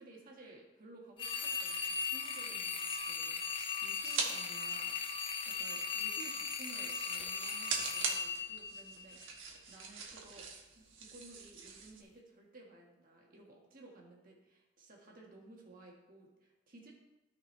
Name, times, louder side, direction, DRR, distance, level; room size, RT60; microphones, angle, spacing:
voice 1, 0.0-3.4 3.8-5.0 5.5-10.5 10.7-16.9, right 2 dB, 40° right, -2 dB, 1.5 m, -56 dB
sound 1, 1.2-9.4, left 5 dB, 25° left, 0.4 m, -38 dB
sound 2, 2.9-4.3 4.7-12.0, right 5 dB, 55° right, 1.3 m, -43 dB
13.5 x 5.0 x 3.3 m, 1.0 s
head